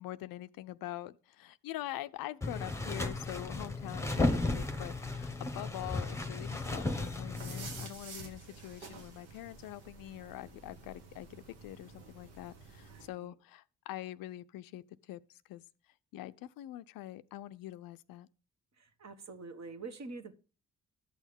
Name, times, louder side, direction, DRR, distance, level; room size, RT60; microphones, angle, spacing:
voice 1, 0.0-14.8 15.1-15.2 15.5-15.6 16.1-18.3, left 15 dB, 60° left, 0.5 m, -44 dB
sound 1, 2.4-7.9, left 2 dB, 5° left, 1.0 m, -34 dB
sound 2, 7.3-13.1, right 4 dB, 75° right, 1.4 m, -50 dB
voice 2, 8.5-8.9 12.9-13.3 18.8-20.3, right 3 dB, 40° right, 1.2 m, -48 dB
12.0 x 6.2 x 3.5 m
hypercardioid pair, 40°, 39 cm